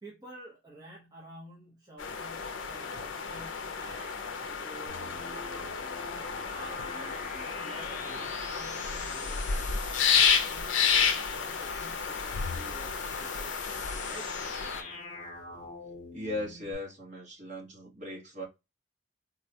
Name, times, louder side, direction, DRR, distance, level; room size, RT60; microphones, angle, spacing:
voice 1, 0.0-5.8 6.5-14.4, right 2 dB, 20° right, 0.6 m, -51 dB
sound 1, 2.0-14.8, left 6 dB, 75° left, 0.5 m, -31 dB
sound 2, 4.9-16.7, left 4 dB, 40° left, 0.8 m, -43 dB
voice 2, 16.1-18.4, left 1 dB, 40° right, 1.3 m, -38 dB
3.6 x 2.2 x 2.7 m
head